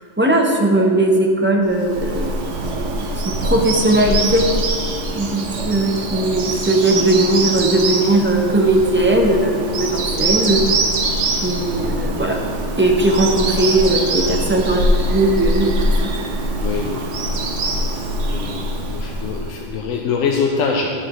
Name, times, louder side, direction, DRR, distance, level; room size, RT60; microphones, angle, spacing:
voice 1, 0.0-2.3 2.6-4.4 5.1-10.6 11.4-12.4 12.8-15.7 16.0-16.1, right 1 dB, 15° right, 1 dB, 0.4 m, -18 dB
Bird vocalization bird call bird song, 1.7-19.7, right 2 dB, 70° right, 1.1 m, -23 dB
voice 2, 16.6-17.2 18.2-20.9, left 5 dB, 85° left, 0 dB, 1.0 m, -24 dB
10.5 x 7.1 x 3.0 m, 2.2 s
omnidirectional pair, 1.3 m